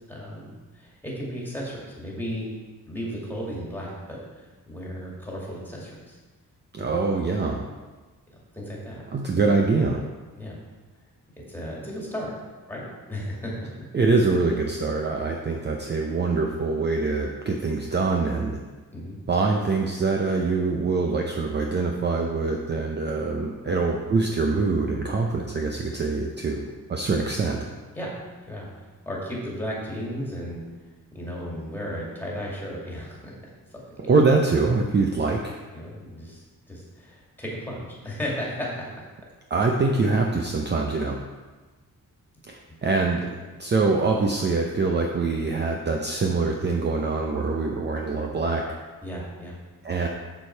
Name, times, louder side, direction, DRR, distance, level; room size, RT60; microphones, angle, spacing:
voice 1, 0.1-2.5 2.8-6.2 6.7-6.9 8.3-9.0 10.4-10.6 11.4-12.3 12.7-13.7 18.9-19.2 23.7-23.8 27.9-28.1 28.4-28.7 29.1-30.6 31.1-33.3 35.7-38.7 49.0-49.6, equal, 5° left, -4 dB, 2.2 m, -35 dB
voice 2, 6.7-7.6 9.1-10.0 13.9-18.6 19.3-26.6 26.9-27.7 34.0-35.5 39.5-41.2 42.5-43.3 43.6-48.6 49.8-50.1, right 3 dB, 30° right, 1 dB, 0.6 m, -24 dB
7.1 x 6.6 x 4.5 m, 1.3 s
wide cardioid pair, 140°, 35 cm